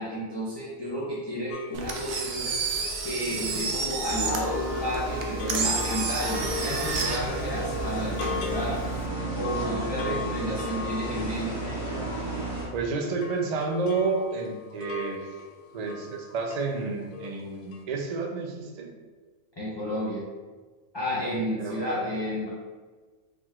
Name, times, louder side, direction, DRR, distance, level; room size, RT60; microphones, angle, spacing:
voice 1, 0.0-2.6 3.0-8.8 9.4-11.5 19.6-20.2 20.9-22.5, equal, 25° left, -8 dB, 0.6 m, -31 dB
sound 1, 1.5-12.8 13.0-16.8 17.0-17.5 17.7-17.8, left 6 dB, 70° left, 0.5 m, -39 dB
Engine, 1.7-9.1, right 4 dB, 65° right, 0.8 m, -31 dB
sound 2, 4.0-12.7, right 2 dB, 10° right, 1.3 m, -33 dB
voice 2, 9.6-10.2 12.7-15.4 15.7-18.9 21.3-21.8, right 4 dB, 85° right, 1 dB, 0.3 m, -31 dB
4.8 x 3.8 x 2.3 m, 1.4 s
omnidirectional pair, 1.4 m